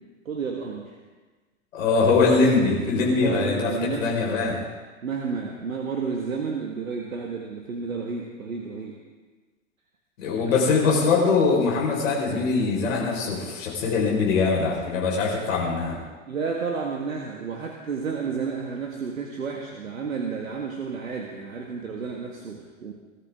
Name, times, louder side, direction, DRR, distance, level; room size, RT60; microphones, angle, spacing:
voice 1, 0.2-0.9 3.0-4.2 5.0-9.0 10.4-10.6 16.3-22.9, right 5 dB, 85° right, 1 dB, 1.7 m, -31 dB
voice 2, 1.7-4.6 10.2-16.0, left 4 dB, 70° left, -2 dB, 4.9 m, -22 dB
21.0 x 14.0 x 3.7 m, 1.3 s
hypercardioid pair, 95°, 39 cm